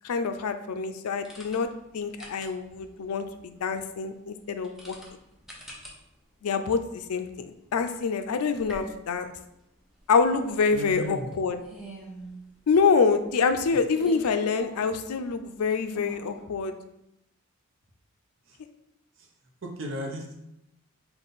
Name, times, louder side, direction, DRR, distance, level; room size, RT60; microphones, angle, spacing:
voice 1, 0.0-1.7 1.9-5.0 6.4-9.3 10.1-11.6 12.7-16.7, left 5 dB, 90° left, 9 dB, 0.4 m, -26 dB
sound 1, 1.2-16.4, right 1 dB, ahead, 0.6 m, -48 dB
voice 2, 10.7-11.3 18.5-18.6 19.6-20.4, equal, 60° right, 1 dB, 0.8 m, -35 dB
5.5 x 2.4 x 3.9 m, 0.85 s
head